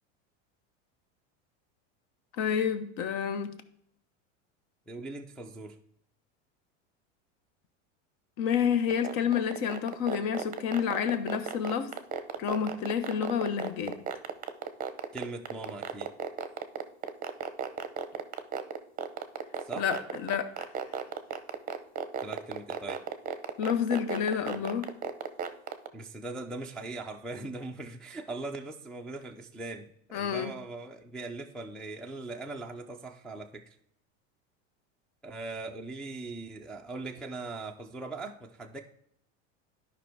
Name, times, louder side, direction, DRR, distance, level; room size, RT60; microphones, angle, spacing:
voice 1, 2.4-3.5 8.4-11.9 12.4-14.0 19.8-20.7 23.6-25.0 30.1-30.5, left 8 dB, 55° left, 1.0 m, -29 dB
voice 2, 4.9-5.8 15.1-16.1 19.6-19.9 22.2-23.1 25.9-33.7 35.2-38.8, right 2 dB, ahead, 0.3 m, -40 dB
sound 1, 8.9-25.9, right 8 dB, 20° right, 0.7 m, -33 dB
11.5 x 5.3 x 3.4 m
supercardioid pair, 120°, 39 cm